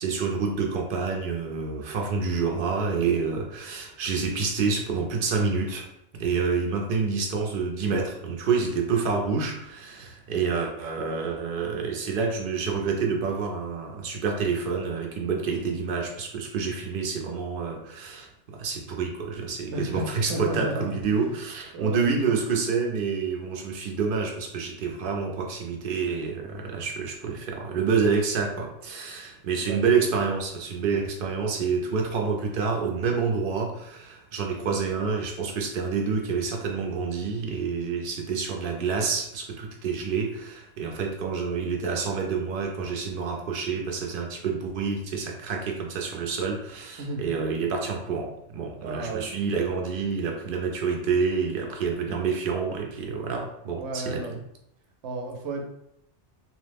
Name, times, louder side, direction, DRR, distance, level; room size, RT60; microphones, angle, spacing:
voice 1, 0.0-5.8 6.2-18.3 18.5-54.4, right 5 dB, 60° right, 1 dB, 0.6 m, -28 dB
voice 2, 19.7-21.4 21.7-22.1 29.6-29.8 47.0-47.2 48.8-49.3 53.8-54.4 55.0-55.6, right 1 dB, 80° right, 2 dB, 0.9 m, -32 dB
3.0 x 2.0 x 3.3 m, 0.78 s
omnidirectional pair, 1.2 m